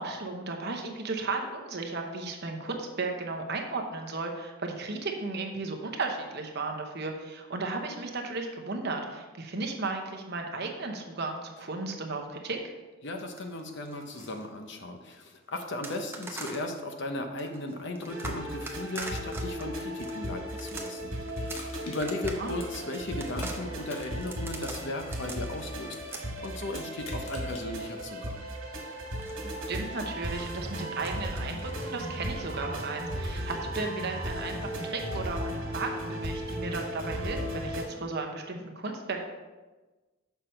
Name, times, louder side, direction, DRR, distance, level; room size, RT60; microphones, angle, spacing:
voice 1, 0.0-12.6 22.4-22.5 29.4-39.2, right 3 dB, 50° right, 3 dB, 0.9 m, -35 dB
voice 2, 13.0-28.3, left 2 dB, 60° left, 4 dB, 0.8 m, -36 dB
sound 1, 13.2-14.5 15.8-16.7 17.4-27.9 29.0-32.0, right 2 dB, 10° right, 0.7 m, -44 dB
sound 2, 18.1-37.8, equal, 75° right, 2.0 m, -36 dB
Crushing, 21.5-23.6 23.9-26.1 26.7-27.6 28.1-28.2, left 3 dB, 85° left, 1.5 m, -47 dB
6.9 x 5.7 x 4.4 m, 1.2 s
head